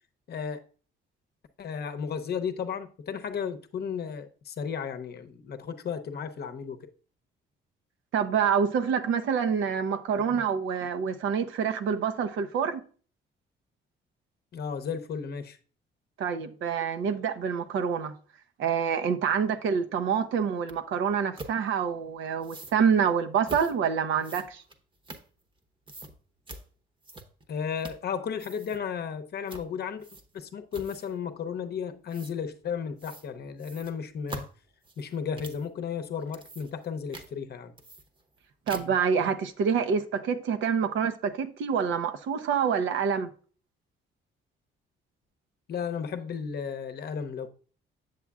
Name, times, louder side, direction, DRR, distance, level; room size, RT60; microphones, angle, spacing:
voice 1, 0.3-0.6 1.6-6.9 14.5-15.6 27.5-30.1 30.3-34.4 35.0-37.7 45.7-47.5, left 7 dB, 55° left, 0.7 m, -34 dB
voice 2, 8.1-12.8 16.2-18.1 18.6-24.6 38.7-43.3, right 7 dB, 80° right, 0.8 m, -27 dB
sound 1, 20.7-20.8 21.4-21.6 22.4-22.8 23.4-23.7 24.2-25.6 25.9-26.1 26.5-26.6 27.0-27.5 27.8-28.1 28.3-28.8 29.5-29.7 30.0-30.4 30.7-31.2 32.1-32.3 33.0-33.3 33.6-35.7 36.2-36.9 37.1-37.3 37.8-38.4 38.7-39.1, right 2 dB, 25° right, 0.9 m, -44 dB
7.6 x 7.3 x 2.4 m
cardioid pair, 90°, 20 cm